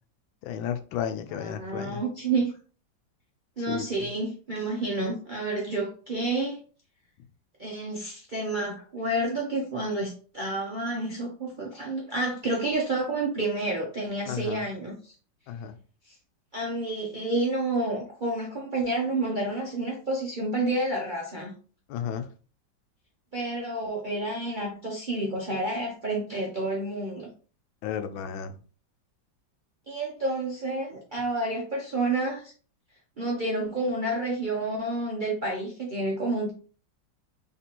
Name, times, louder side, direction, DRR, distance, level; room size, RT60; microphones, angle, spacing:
voice 1, 0.4-2.0 3.7-3.8 14.3-14.6 15.5-15.7 21.9-22.3 27.8-28.5, left 8 dB, 85° left, 1.4 m, -33 dB
voice 2, 1.3-2.5 3.6-6.6 7.6-15.1 16.1-16.2 16.5-21.5 23.3-27.3 29.9-32.5 33.2-36.5, right 2 dB, 55° right, 0.5 m, -29 dB
4.1 x 3.5 x 2.9 m
omnidirectional pair, 2.1 m